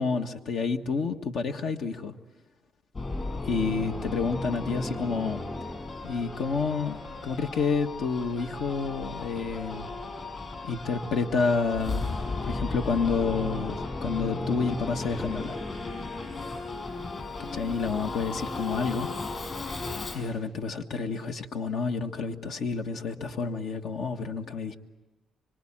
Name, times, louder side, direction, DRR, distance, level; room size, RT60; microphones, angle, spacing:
voice 1, 0.0-2.1 3.4-5.4 6.0-9.9 10.6-12.1 12.4-15.5 17.4-19.1 20.1-24.8, left 5 dB, 70° left, 5 dB, 1.5 m, -29 dB
Singing / Musical instrument, 2.9-20.3, left 3 dB, 35° left, 5.8 m, -35 dB
25.5 x 25.0 x 8.8 m, 1.1 s
cardioid pair, 90°, 0 cm